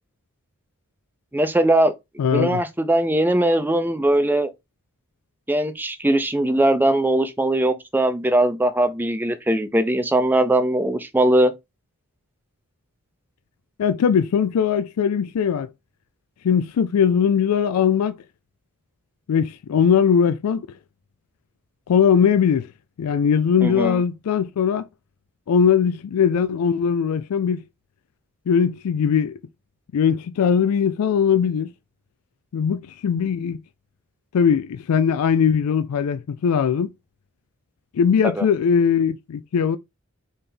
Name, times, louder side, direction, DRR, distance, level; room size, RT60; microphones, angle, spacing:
voice 1, 1.3-1.9 2.3-4.5 5.5-11.5 23.6-24.0 38.4-38.5, right 1 dB, 10° right, 0.5 m, -20 dB
voice 2, 2.2-2.6 13.8-15.7 16.4-18.2 19.3-20.7 21.9-22.7 23.0-24.9 25.5-27.6 28.5-29.4 29.9-31.7 32.5-33.6 34.3-36.9 37.9-39.8, left 7 dB, 85° left, 0.4 m, -20 dB
4.3 x 3.3 x 3.6 m
head